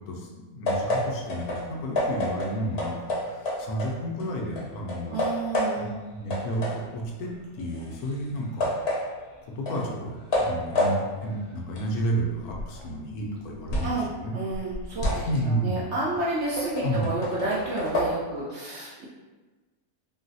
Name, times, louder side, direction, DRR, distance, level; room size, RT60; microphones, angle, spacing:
voice 1, 0.1-5.2 5.7-5.9 6.1-8.7 9.6-14.4 15.2-15.9 16.8-17.1, right 1 dB, 80° left, 0 dB, 1.1 m, -31 dB
sound 1, 0.7-4.3 4.6-6.0 6.3-14.0 14.4-18.1, left 1 dB, 55° left, 0.8 m, -30 dB
voice 2, 5.1-5.9 13.8-19.1, right 2 dB, 65° right, -6 dB, 0.7 m, -31 dB
3.8 x 2.0 x 2.6 m, 1.2 s
omnidirectional pair, 1.6 m